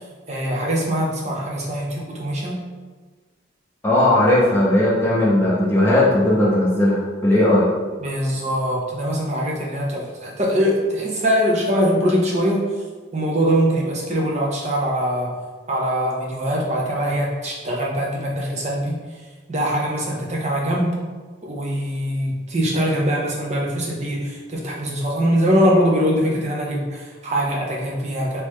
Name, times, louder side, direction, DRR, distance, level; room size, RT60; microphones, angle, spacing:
voice 1, 0.3-2.6 8.0-12.6 13.1-15.3 15.7-19.0 19.5-20.9 21.4-28.4, equal, 35° right, -2 dB, 0.7 m, -22 dB
voice 2, 3.8-7.7, left 1 dB, 15° left, -7 dB, 0.6 m, -17 dB
3.7 x 2.9 x 3.1 m, 1.4 s
head